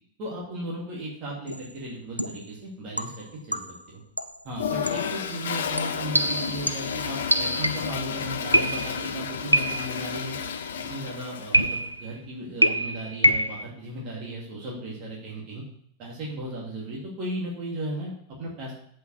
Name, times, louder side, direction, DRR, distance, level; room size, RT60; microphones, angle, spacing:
voice 1, 0.2-3.6 3.9-4.0 4.4-10.3 10.9-15.6 16.0-18.7, right 1 dB, 40° right, -4 dB, 2.5 m, -36 dB
sound 1, 1.5-1.7 2.2-2.5 3.0-3.9 4.2-4.4 4.9-5.1 5.8-8.0 8.5-9.1 9.5-10.1 11.5-12.1 12.6-13.6, right 1 dB, 90° right, 0.4 m, -25 dB
Toilet flush, 4.5-11.8, left 6 dB, 65° left, 0.6 m, -32 dB
7.8 x 5.2 x 6.3 m, 0.68 s
figure-of-eight pair, 90°, 0 cm